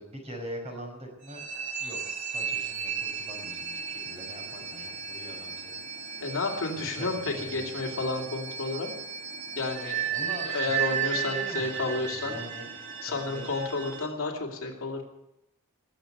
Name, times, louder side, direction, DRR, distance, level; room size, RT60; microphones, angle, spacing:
voice 1, 0.0-1.5 1.8-6.2 6.8-8.0 10.1-12.7 13.1-13.5, right 1 dB, 30° right, 1 dB, 5.4 m, -43 dB
sound 1, 1.2-14.1, right 8 dB, 60° right, 2.4 m, -35 dB
voice 2, 6.2-8.9 9.6-10.0 10.4-12.4 13.0-15.0, left 3 dB, 65° left, 1 dB, 2.7 m, -31 dB
19.5 x 7.9 x 9.2 m, 0.89 s
head